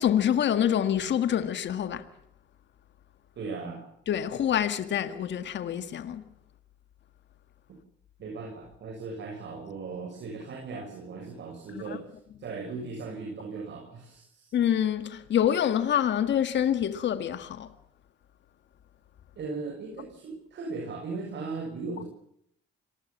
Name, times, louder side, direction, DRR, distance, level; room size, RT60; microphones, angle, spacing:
voice 1, 0.0-2.1 4.1-6.2 11.7-12.0 14.5-17.7, left 10 dB, 65° left, 1.8 m, -26 dB
voice 2, 3.4-3.9 8.2-12.1 12.4-14.5 19.4-22.0, right 4 dB, 65° right, 7.0 m, -37 dB
26.5 x 20.5 x 7.4 m
cardioid pair, 90°, 20 cm